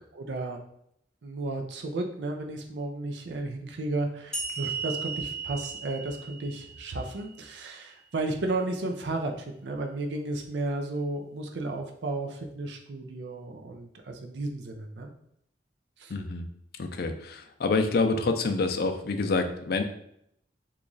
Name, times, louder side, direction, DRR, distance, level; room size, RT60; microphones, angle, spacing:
voice 1, 0.1-0.6 1.2-15.1 16.0-16.1, right 2 dB, 80° right, 4 dB, 0.5 m, -33 dB
sound 1, 4.3-7.7, right 4 dB, 5° left, 0.6 m, -36 dB
voice 2, 16.1-16.4 16.8-19.8, left 3 dB, 60° left, 6 dB, 0.4 m, -27 dB
3.0 x 2.4 x 3.8 m, 0.72 s
head